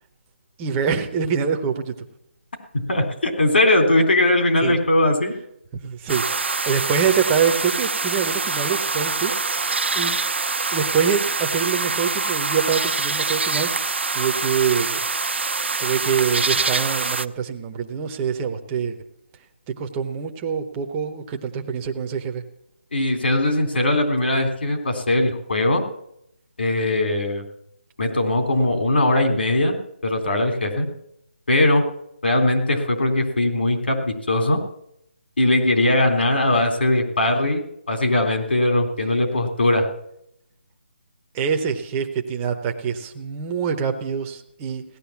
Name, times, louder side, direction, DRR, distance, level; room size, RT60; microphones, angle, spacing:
voice 1, 0.6-1.9 4.6-4.8 5.8-6.2 6.6-9.3 9.6-10.2 10.7-15.0 15.8-19.0 19.8-22.4 41.3-44.8, right 7 dB, 10° right, 4 dB, 0.8 m, -25 dB
voice 2, 2.9-5.3 22.9-25.8 26.6-27.4 28.0-29.8 30.0-30.9 31.5-31.8 32.2-34.6 35.4-39.9, left 1 dB, 60° left, 5 dB, 3.5 m, -20 dB
sound 1, 6.1-17.3, right 4 dB, 75° right, 0.8 m, -25 dB
17.0 x 11.5 x 7.2 m, 0.77 s
hypercardioid pair, 175°, 6 cm